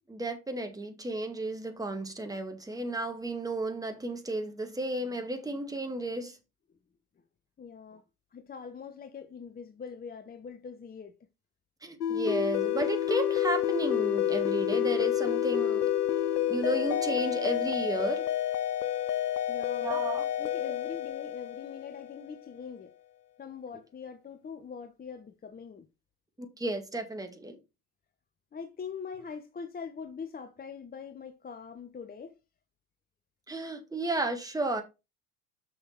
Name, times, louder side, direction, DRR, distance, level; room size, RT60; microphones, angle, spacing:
voice 1, 0.1-6.4 11.8-15.9 16.5-18.3 19.8-20.3 26.4-27.6 33.5-34.8, right 1 dB, 10° right, 2.2 m, -33 dB
voice 2, 7.6-8.0 8.3-11.1 19.5-20.0 20.4-22.9 23.4-25.9 28.5-32.4, left 6 dB, 20° left, 0.9 m, -43 dB
sound 1, 12.0-22.3, left 11 dB, 85° left, 0.7 m, -29 dB
6.7 x 6.5 x 4.5 m
figure-of-eight pair, 70°, 46 cm